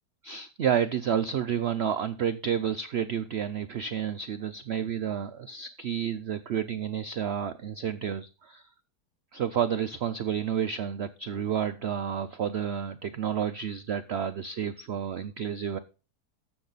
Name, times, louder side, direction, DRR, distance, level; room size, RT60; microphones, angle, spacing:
voice 1, 0.2-8.6 9.3-15.8, right 8 dB, 85° right, 11 dB, 0.5 m, -30 dB
13.0 x 6.9 x 4.0 m, 0.34 s
omnidirectional pair, 1.8 m